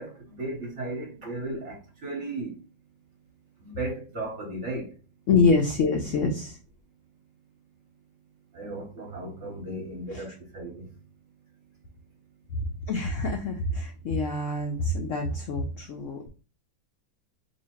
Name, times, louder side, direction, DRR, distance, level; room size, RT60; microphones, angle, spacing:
voice 1, 0.0-2.6 3.6-4.9 8.5-10.9, right 2 dB, 50° right, 0.9 m, -35 dB
voice 2, 5.3-6.6 10.1-10.2 12.5-16.3, left 3 dB, 80° left, 0.7 m, -26 dB
2.8 x 2.7 x 4.3 m
omnidirectional pair, 2.0 m